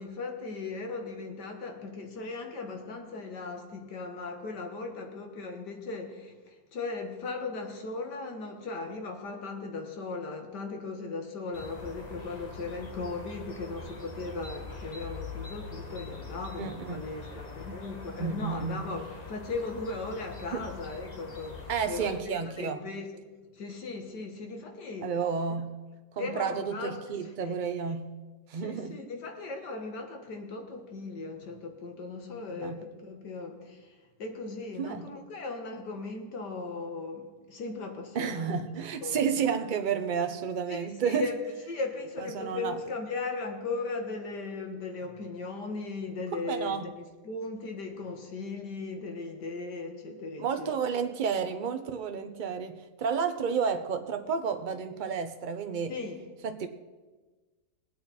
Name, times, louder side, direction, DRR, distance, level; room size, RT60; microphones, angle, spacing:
voice 1, 0.0-23.1 23.5-25.1 26.2-26.9 27.4-27.5 28.6-38.6 39.0-39.5 40.7-41.4 41.7-50.7 55.9-56.2, left 3 dB, 85° left, 4 dB, 2.1 m, -37 dB
sound 1, 11.5-22.2, left 3 dB, 30° left, 1.1 m, -43 dB
voice 2, 16.6-17.0 18.2-18.9 20.5-20.7 21.7-22.8 25.0-25.8 26.1-28.1 28.5-29.0 32.5-32.8 34.8-35.1 38.1-41.3 42.2-42.8 46.4-46.9 50.4-55.9 56.4-56.7, right 6 dB, 40° right, 7 dB, 0.7 m, -31 dB
20.5 x 8.7 x 4.3 m, 1.3 s
omnidirectional pair, 1.8 m